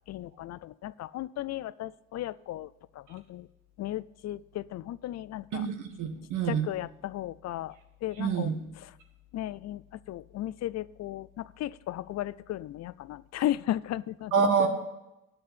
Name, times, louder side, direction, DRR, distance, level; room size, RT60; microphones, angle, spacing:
voice 1, 0.1-2.7 3.0-3.5 3.8-5.4 6.5-7.7 8.0-8.5 9.3-9.8 10.1-14.4, left 13 dB, 60° left, 18 dB, 0.4 m, -35 dB
voice 2, 5.5-6.7 8.2-8.6 14.3-14.7, right 6 dB, 85° right, 5 dB, 1.7 m, -26 dB
9.0 x 6.6 x 8.5 m, 0.93 s
cardioid pair, 90°, 30 cm